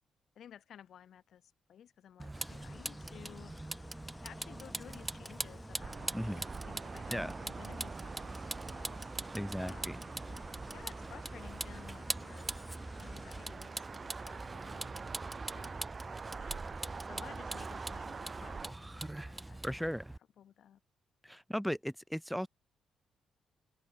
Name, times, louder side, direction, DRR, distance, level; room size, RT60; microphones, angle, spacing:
voice 1, 0.3-3.5 4.2-9.1 9.6-12.5 13.0-15.0 15.5-19.9 20.4-20.8, left 9 dB, 70° left, 4.8 m, -55 dB
Vehicle, 2.2-20.2, right 2 dB, 15° right, 2.3 m, -43 dB
sound 1, 2.3-13.5, left 3 dB, 30° left, 7.2 m, -56 dB
sound 2, 5.8-18.7, right 4 dB, 40° right, 0.7 m, -45 dB
voice 2, 9.3-10.0 19.6-20.0 21.2-22.5, equal, ahead, 1.2 m, -36 dB
supercardioid pair, 60°, 0 cm